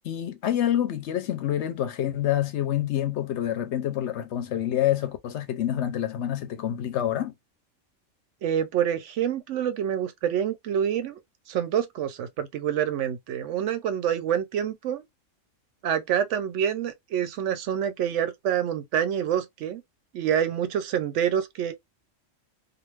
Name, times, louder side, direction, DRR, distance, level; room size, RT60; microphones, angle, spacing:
voice 1, 0.0-7.3, left 11 dB, 70° left, 0.8 m, -27 dB
voice 2, 8.4-11.2 11.5-15.0 15.8-19.8 20.1-21.7, right 9 dB, 70° right, 0.9 m, -27 dB
2.4 x 2.4 x 3.1 m
omnidirectional pair, 1.3 m